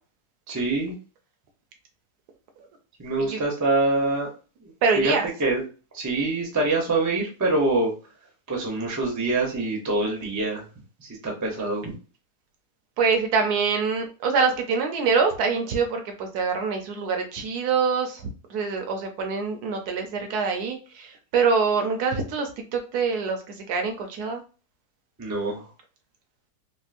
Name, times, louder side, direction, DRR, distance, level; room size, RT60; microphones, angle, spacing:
voice 1, 0.5-1.0 3.0-4.3 4.6-4.7 5.0-5.1 5.4-5.6 5.9-7.9 8.5-10.7 11.0-11.9 25.2-25.7, right 2 dB, 20° right, -1 dB, 0.5 m, -25 dB
voice 2, 4.8-5.3 13.0-24.4, right 5 dB, 75° right, 4 dB, 1.3 m, -25 dB
4.3 x 2.0 x 2.5 m, 0.34 s
omnidirectional pair, 1.7 m